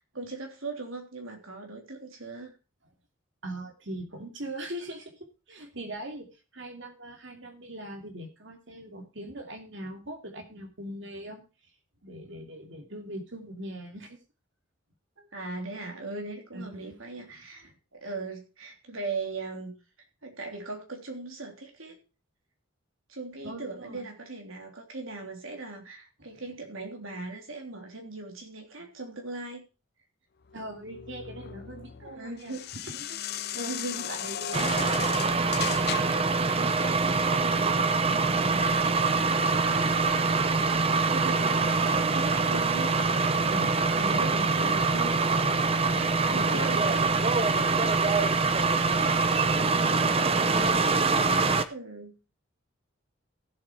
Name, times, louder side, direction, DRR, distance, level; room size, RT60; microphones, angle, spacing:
voice 1, 0.0-2.5 15.3-19.7 20.2-22.0 23.1-29.7 32.0-32.6 33.5-34.1 41.1-43.0 44.1-44.9 45.3-45.4 45.9-47.1 51.1-52.2, right 3 dB, 80° right, 3 dB, 3.3 m, -39 dB
voice 2, 3.4-11.4 12.0-14.2 16.5-17.0 17.6-17.7 23.4-24.1 26.2-26.4 30.5-32.5 32.8-33.2 33.9-39.0 43.5-45.3 45.9-46.9, right 1 dB, 60° right, 4 dB, 2.6 m, -41 dB
sound 1, 30.5-36.3, left 10 dB, 50° left, 0.5 m, -37 dB
sound 2, 34.5-51.6, right 4 dB, 30° right, 0.7 m, -24 dB
15.5 x 7.7 x 4.5 m, 0.32 s
head